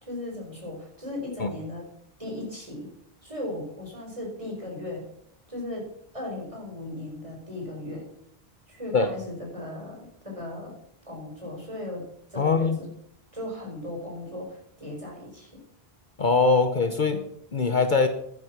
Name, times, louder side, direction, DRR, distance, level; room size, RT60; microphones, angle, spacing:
voice 1, 0.0-1.8 2.2-2.9 3.2-5.0 5.5-5.8 6.1-8.0 8.7-10.7 11.1-12.0 12.3-12.9 13.3-15.5, left 1 dB, 30° right, -1 dB, 5.0 m, -37 dB
voice 2, 12.4-12.8 16.2-17.2 17.5-18.1, left 4 dB, 50° left, 8 dB, 1.1 m, -22 dB
11.0 x 10.5 x 6.0 m, 0.72 s
omnidirectional pair, 1.1 m